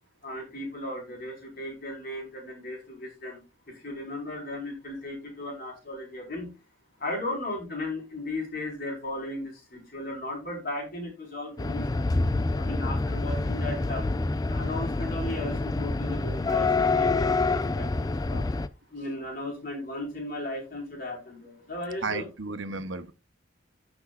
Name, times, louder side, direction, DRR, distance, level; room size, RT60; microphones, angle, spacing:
voice 1, 0.2-3.4 3.7-6.5 7.0-11.9 12.6-14.1 14.5-17.9 18.3-18.5 18.9-22.2, left 1 dB, 45° left, 4.6 m, -36 dB
sound 1, 11.6-18.7, left 3 dB, 20° left, 0.3 m, -27 dB
voice 2, 22.0-23.1, right 3 dB, 65° right, 0.9 m, -33 dB
15.0 x 6.3 x 2.5 m
head